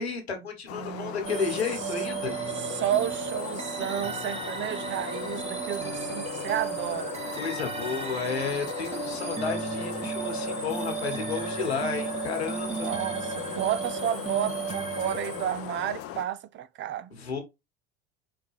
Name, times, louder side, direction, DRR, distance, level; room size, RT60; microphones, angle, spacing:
voice 1, 0.0-2.3 7.3-12.9 17.1-17.4, left 5 dB, 90° left, 1.4 m, -32 dB
sound 1, 0.7-16.2, left 11 dB, 50° left, 0.6 m, -40 dB
voice 2, 0.7-1.2 2.7-7.1 12.8-17.1, right 11 dB, 40° right, 0.5 m, -31 dB
sound 2, 1.2-16.0, right 4 dB, 20° right, 1.3 m, -34 dB
4.5 x 3.7 x 3.1 m
hypercardioid pair, 75°, 31 cm